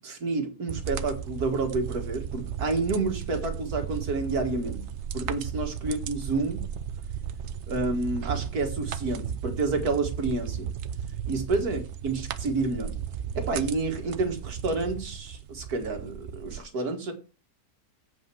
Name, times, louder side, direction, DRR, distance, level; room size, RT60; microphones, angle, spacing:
voice 1, 0.0-4.9 5.1-6.7 7.7-10.7 11.3-13.0 13.4-17.1, right 3 dB, 75° right, 4 dB, 2.3 m, -29 dB
sound 1, 0.7-16.6, right 8 dB, 60° right, 0.8 m, -35 dB
8.2 x 5.3 x 6.8 m, 0.34 s
omnidirectional pair, 1.6 m